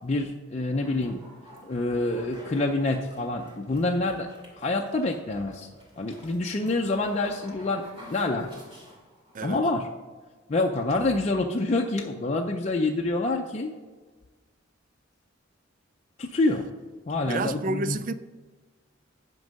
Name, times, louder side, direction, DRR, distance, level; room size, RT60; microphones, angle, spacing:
voice 1, 0.0-1.2 1.6-4.3 4.6-5.7 6.0-7.8 8.1-8.6 9.4-9.9 10.5-13.7 16.2-16.7 17.1-18.0, left 2 dB, 35° left, 0.5 m, -27 dB
sound 1, 0.8-9.4, equal, 25° right, 2.6 m, -50 dB
voice 2, 17.2-18.1, right 3 dB, 40° right, 0.4 m, -30 dB
9.5 x 5.3 x 5.2 m
head